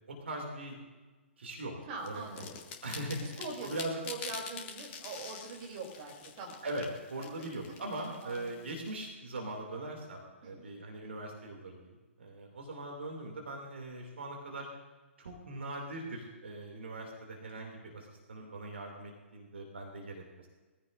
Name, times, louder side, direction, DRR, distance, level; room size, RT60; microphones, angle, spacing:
voice 1, 0.1-0.8 1.4-1.7 2.0-2.5 2.8-4.0 6.6-14.7 15.2-20.5, right 1 dB, 60° right, 1 dB, 2.6 m, -41 dB
voice 2, 1.9-2.6 3.2-3.7 4.0-6.6 8.2-8.5 10.4-10.7, right 3 dB, 35° right, 0 dB, 3.2 m, -43 dB
sound 1, 2.0-8.9, left 6 dB, 30° left, 1.8 m, -46 dB
21.5 x 15.0 x 2.6 m, 1.3 s
figure-of-eight pair, 120°, 7 cm